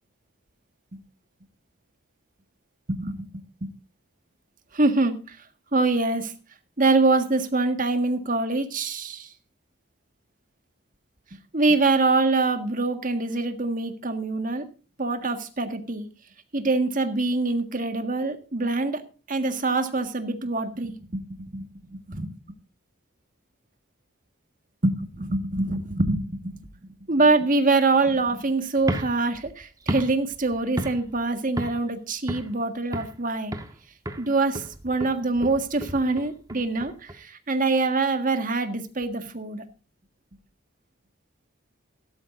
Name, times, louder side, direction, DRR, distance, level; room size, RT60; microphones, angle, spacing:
voice 1, 2.9-3.7 4.7-5.4 5.7-6.3 6.8-9.3 11.5-14.7 15.0-16.1 16.5-19.0 19.3-22.3 24.8-26.6 27.1-33.6 34.2-39.7, right 3 dB, 45° right, 7 dB, 1.7 m, -24 dB
sound 1, 28.8-31.2 31.6-31.9 32.3-33.2 33.5-33.8 34.1-37.2, right 1 dB, 20° right, 1.3 m, -34 dB
16.5 x 12.5 x 2.6 m, 0.36 s
head